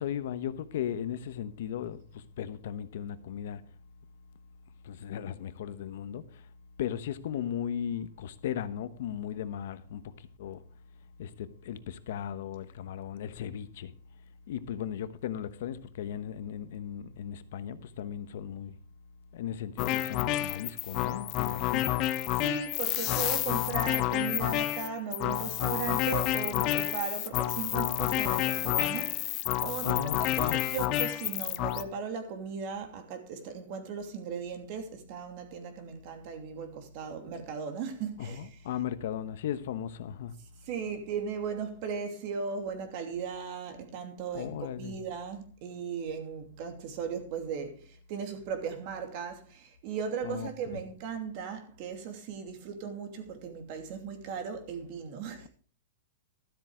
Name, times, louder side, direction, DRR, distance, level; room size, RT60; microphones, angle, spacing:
voice 1, 0.0-3.6 4.8-6.5 6.8-10.6 11.2-13.9 14.5-18.7 19.3-21.9 29.8-30.6 38.2-40.4 44.3-44.9 50.2-50.5, left 9 dB, 65° left, 1.0 m, -37 dB
sound 1, 19.8-31.8, left 14 dB, 35° left, 0.9 m, -29 dB
voice 2, 22.3-38.5 40.6-55.5, right 6 dB, 45° right, 2.7 m, -37 dB
13.0 x 7.7 x 4.9 m
supercardioid pair, 150°, 0 cm